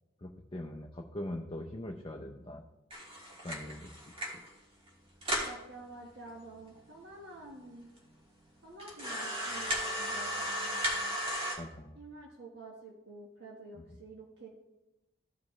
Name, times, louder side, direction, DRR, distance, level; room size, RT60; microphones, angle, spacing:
voice 1, 0.2-2.6 3.4-3.9 4.3-4.4 11.6-12.0, left 1 dB, 25° left, 1 dB, 0.5 m, -41 dB
sound 1, 2.9-4.5 4.9-5.0 5.2-5.6 6.3-6.4 6.6-6.7 7.4-7.5 8.0-8.1 8.8-11.5, equal, 25° right, 1.8 m, -35 dB
voice 2, 5.4-7.9 8.6-11.2 11.9-14.5, right 2 dB, 55° right, -2 dB, 1.3 m, -49 dB
14.5 x 5.1 x 3.1 m, 0.98 s
head